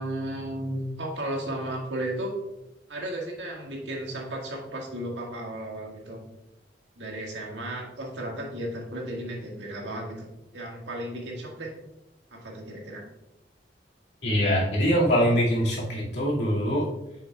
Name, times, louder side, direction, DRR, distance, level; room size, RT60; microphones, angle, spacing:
voice 1, 0.0-2.3 2.9-6.2 7.0-10.3 10.5-11.7 12.3-13.0, right 1 dB, 90° right, -1 dB, 1.8 m, -34 dB
voice 2, 14.2-16.9, equal, 70° left, -4 dB, 2.3 m, -23 dB
7.8 x 6.4 x 2.4 m, 0.89 s
head